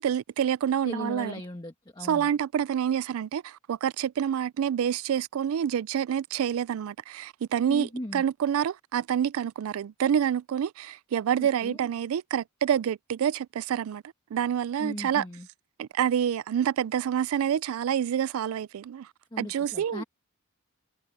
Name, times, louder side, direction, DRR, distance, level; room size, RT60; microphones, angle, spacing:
voice 1, 0.0-1.3 2.1-14.0 14.3-15.2 15.8-19.1 19.4-20.0, right 9 dB, 70° right, 0.3 m, -27 dB
voice 2, 0.8-2.3 7.7-8.2 11.4-11.8 14.8-15.5 19.3-20.0, left 1 dB, 20° left, 1.2 m, -37 dB
head